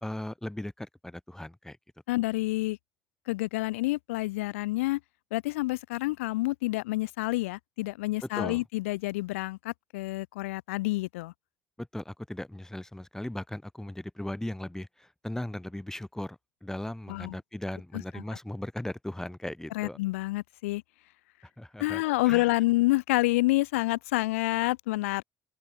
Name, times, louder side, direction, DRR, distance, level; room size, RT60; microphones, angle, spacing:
voice 1, 0.0-1.8 8.3-8.6 11.8-20.0 21.6-22.4, left 1 dB, 5° left, 2.4 m, -38 dB
voice 2, 2.1-2.8 3.3-5.0 5.3-11.3 17.1-17.3 17.9-18.4 19.7-20.8 21.8-25.2, left 20 dB, 85° left, 0.9 m, -28 dB
open air
hypercardioid pair, 65°, 7 cm